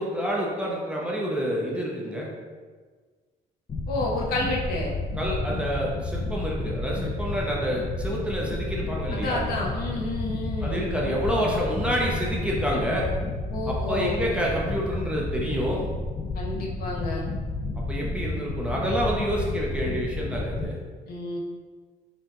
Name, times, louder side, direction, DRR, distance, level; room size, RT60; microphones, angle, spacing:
voice 1, 0.0-2.3 5.2-9.4 10.6-13.1 13.7-15.8 17.7-20.8, equal, 5° right, -4 dB, 0.8 m, -28 dB
sound 1, 3.7-20.7, left 2 dB, 30° left, 0.5 m, -31 dB
voice 2, 3.9-4.9 9.1-10.9 13.5-14.2 16.3-17.3 21.1-21.4, left 2 dB, 65° left, -2 dB, 0.9 m, -30 dB
4.5 x 2.4 x 3.8 m, 1.5 s
cardioid pair, 110°, 17 cm